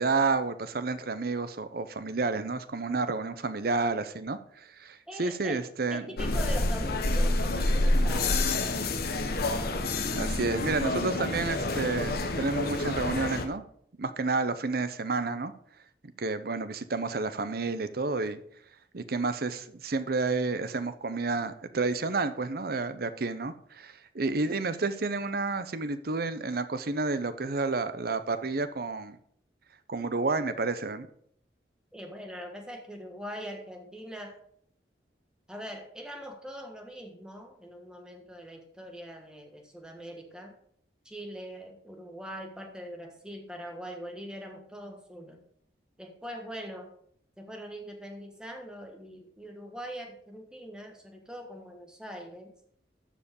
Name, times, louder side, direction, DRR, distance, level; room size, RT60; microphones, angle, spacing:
voice 1, 0.0-6.0 10.1-13.6 14.0-15.5 16.2-18.4 18.9-29.2 29.9-31.1, right 3 dB, 55° right, 12 dB, 0.8 m, -30 dB
voice 2, 5.1-5.6 5.9-8.4 31.9-34.3 35.5-40.5 41.0-45.4 46.0-46.9 47.4-52.5, equal, 5° right, 2 dB, 1.5 m, -42 dB
sound 1, 6.2-13.4, left 2 dB, 55° left, 1.2 m, -28 dB
13.5 x 5.1 x 5.3 m, 0.66 s
head